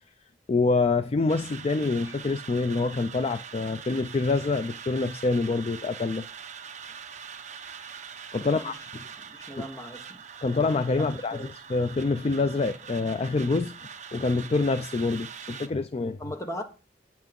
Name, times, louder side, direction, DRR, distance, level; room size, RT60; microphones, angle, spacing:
voice 1, 0.5-6.2 8.3-8.7 9.6-9.7 10.4-11.4 11.7-13.7 14.1-16.2, left 3 dB, 35° left, 0.4 m, -26 dB
sound 1, 1.3-15.7, right 7 dB, 40° right, 1.0 m, -43 dB
voice 2, 8.4-8.8 9.3-10.2 11.0-11.5 16.2-16.6, equal, 20° left, 1.3 m, -38 dB
8.8 x 5.9 x 5.3 m
head